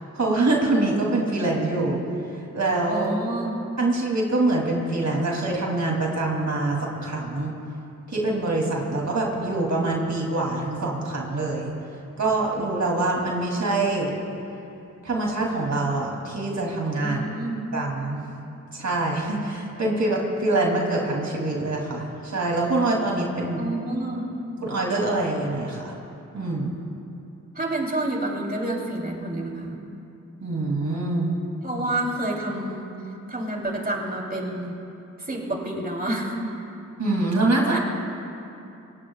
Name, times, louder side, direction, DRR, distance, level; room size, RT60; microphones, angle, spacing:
voice 1, 0.1-2.0 2.3-3.1 3.8-7.5 8.1-11.7 12.2-14.1 15.0-17.3 17.7-18.2 18.7-23.6 24.6-26.0 26.3-26.7 30.4-31.4 37.0-37.8, right 2 dB, 55° right, -2 dB, 3.2 m, -25 dB
voice 2, 2.9-3.6 17.0-17.6 23.6-24.3 27.5-29.8 31.6-32.9 33.3-34.8 35.2-36.3 37.7-37.8, right 1 dB, 25° right, -1 dB, 3.6 m, -29 dB
27.5 x 17.5 x 2.5 m, 2.7 s
supercardioid pair, 45°, 34 cm